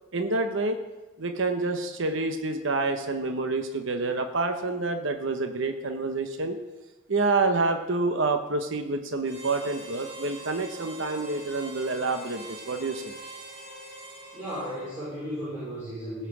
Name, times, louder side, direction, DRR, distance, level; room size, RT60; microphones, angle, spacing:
voice 1, 0.1-0.8 1.2-6.6 7.1-13.1, right 3 dB, 60° right, 6 dB, 1.0 m, -28 dB
Harmonica, 9.2-15.2, right 2 dB, 25° right, 3.1 m, -43 dB
voice 2, 14.3-16.3, equal, 10° right, -11 dB, 4.8 m, -35 dB
16.0 x 5.7 x 8.3 m, 1.1 s
head